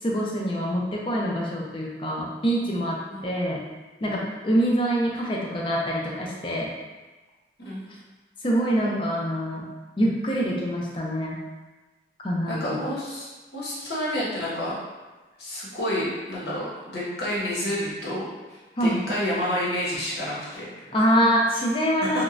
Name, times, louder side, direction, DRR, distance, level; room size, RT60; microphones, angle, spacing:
voice 1, 0.0-3.6 4.0-6.7 8.4-9.6 10.0-11.4 12.2-12.8 18.8-19.0 20.9-22.2, equal, 30° left, -2 dB, 0.4 m, -25 dB
voice 2, 12.5-14.8 15.4-20.9 22.0-22.2, left 1 dB, 65° left, -7 dB, 0.9 m, -30 dB
3.0 x 2.1 x 2.4 m, 1.2 s
head